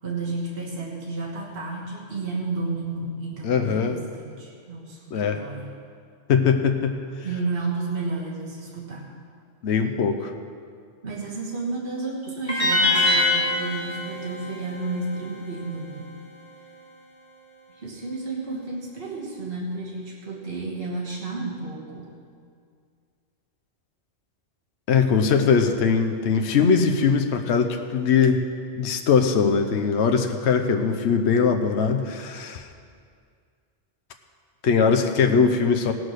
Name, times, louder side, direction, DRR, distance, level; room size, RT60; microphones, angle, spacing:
voice 1, 0.0-5.7 7.2-9.1 11.0-16.1 17.7-22.1, right 3 dB, 50° right, -4 dB, 1.7 m, -32 dB
voice 2, 3.4-4.0 5.1-5.4 6.3-7.0 9.6-10.3 24.9-28.4 28.7-32.7 34.6-35.9, left 6 dB, 70° left, 6 dB, 1.0 m, -21 dB
sound 1, 12.5-15.6, left 2 dB, 40° left, 3.3 m, -24 dB
17.0 x 6.2 x 6.5 m, 2.2 s
omnidirectional pair, 1.2 m